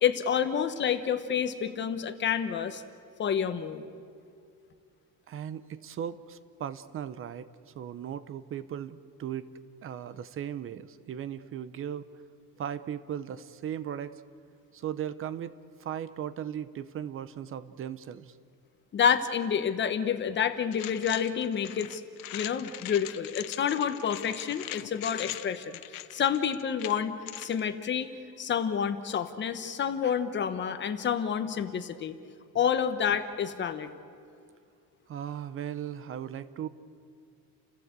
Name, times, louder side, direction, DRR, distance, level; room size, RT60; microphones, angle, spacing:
voice 1, 0.0-2.8 3.2-3.8 18.9-22.0 22.3-25.7 26.1-28.1 28.4-32.2 32.5-33.9, left 8 dB, 30° left, 9 dB, 1.1 m, -28 dB
voice 2, 5.3-7.5 7.7-9.5 9.8-12.1 12.6-14.2 14.7-15.5 15.8-18.4 35.1-36.7, right 9 dB, 40° right, 14 dB, 0.7 m, -37 dB
sound 1, 20.7-27.6, left 15 dB, 70° left, 0.9 m, -41 dB
29.5 x 16.5 x 8.1 m, 2.4 s
cardioid pair, 180°, 35 cm